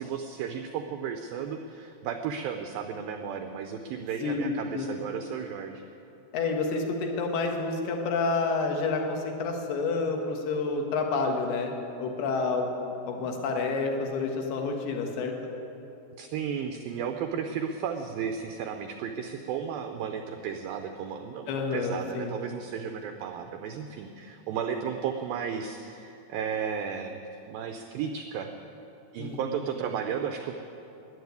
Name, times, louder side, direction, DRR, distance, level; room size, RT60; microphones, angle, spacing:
voice 1, 0.0-5.8 16.2-27.2 27.5-28.5 29.1-30.5, right 7 dB, 85° right, 6 dB, 2.1 m, -34 dB
voice 2, 4.2-4.9 6.3-11.7 12.0-15.3 21.5-22.3 29.2-29.6, left 4 dB, 70° left, 2 dB, 3.2 m, -29 dB
14.5 x 10.5 x 9.4 m, 2.9 s
omnidirectional pair, 5.0 m